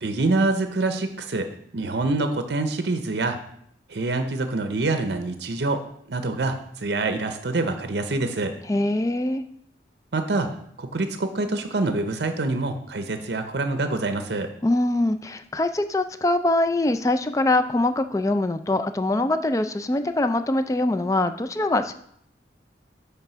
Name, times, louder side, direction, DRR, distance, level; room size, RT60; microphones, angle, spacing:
voice 1, 0.0-3.4 3.9-5.8 6.1-8.5 10.1-10.5 10.8-14.5, right 2 dB, 65° right, 7 dB, 0.6 m, -26 dB
voice 2, 8.7-9.4 14.6-21.9, left 2 dB, 20° left, 9 dB, 0.3 m, -23 dB
8.9 x 3.5 x 5.6 m, 0.70 s
head